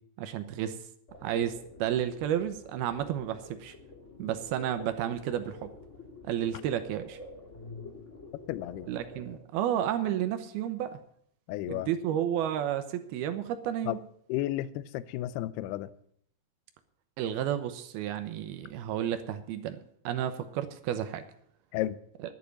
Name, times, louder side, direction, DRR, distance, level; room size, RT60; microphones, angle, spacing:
voice 1, 0.2-0.8 1.2-3.7 4.2-5.7 6.3-7.2 8.9-10.9 11.7-14.0 17.2-19.8 20.0-21.2, right 10 dB, 80° right, 2.4 m, -31 dB
sound 1, 1.1-9.4, left 2 dB, 40° left, 1.0 m, -48 dB
voice 2, 8.5-8.9 11.5-11.9 13.9-14.0 14.3-15.9 21.7-22.0, left 14 dB, 80° left, 2.4 m, -32 dB
11.5 x 7.2 x 9.7 m
omnidirectional pair, 5.0 m